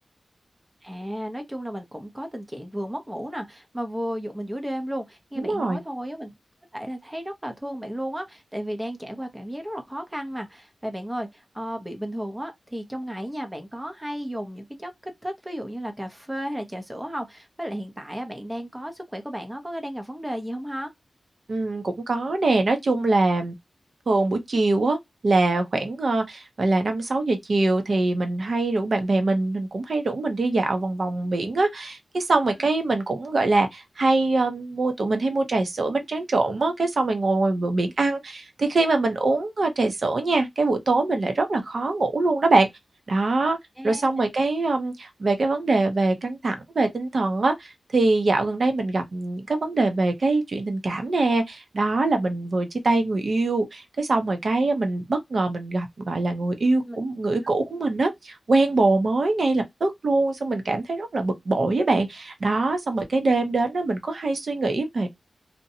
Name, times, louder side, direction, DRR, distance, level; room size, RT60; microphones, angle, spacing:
voice 1, 0.8-6.3 6.7-20.9 43.8-44.1 56.9-57.0, equal, 10° right, 0.5 m, -33 dB
voice 2, 5.4-5.8 21.5-23.5 24.1-25.0 25.2-42.7 43.1-43.6 43.8-65.1, right 2 dB, 55° right, 0.6 m, -23 dB
2.6 x 2.1 x 2.6 m
wide cardioid pair, 130°, 0 cm